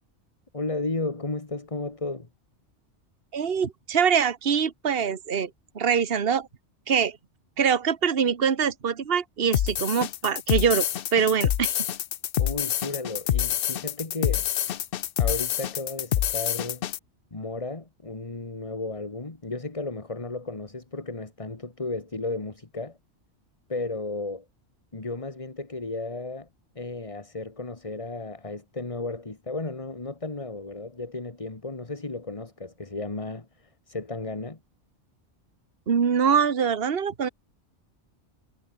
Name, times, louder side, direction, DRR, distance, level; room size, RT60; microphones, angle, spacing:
voice 1, 0.5-2.3 12.4-14.5 15.2-16.9 17.3-23.0 23.7-24.5 24.9-26.5 26.8-34.6, left 3 dB, 30° left, 1.9 m, -34 dB
voice 2, 3.3-5.5 5.7-6.5 6.9-7.2 7.6-10.9 11.1-11.7 35.9-37.3, right 7 dB, 55° right, 1.5 m, -24 dB
sound 1, 9.5-17.0, left 11 dB, 60° left, 0.7 m, -27 dB
omnidirectional pair, 1.2 m